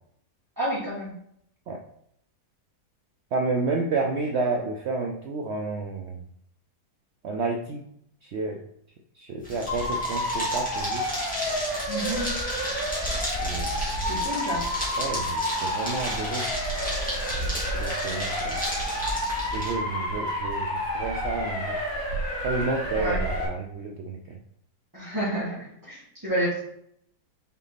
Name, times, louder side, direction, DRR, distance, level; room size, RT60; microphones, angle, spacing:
voice 1, 0.6-1.1 11.9-12.3 14.1-14.7 22.9-23.2 24.9-26.6, right 1 dB, 10° right, -11 dB, 1.9 m, -29 dB
voice 2, 3.3-6.2 7.2-7.8 8.2-8.6 9.2-11.0 13.4-13.8 15.0-16.5 17.3-18.6 19.5-21.8 22.4-24.4, right 3 dB, 65° right, 3 dB, 0.7 m, -30 dB
sound 1, 9.4-19.7, equal, 5° left, 2.1 m, -34 dB
Motor vehicle (road) / Siren, 9.7-23.5, equal, 65° left, 2.7 m, -30 dB
5.9 x 4.1 x 4.1 m, 0.72 s
omnidirectional pair, 1.7 m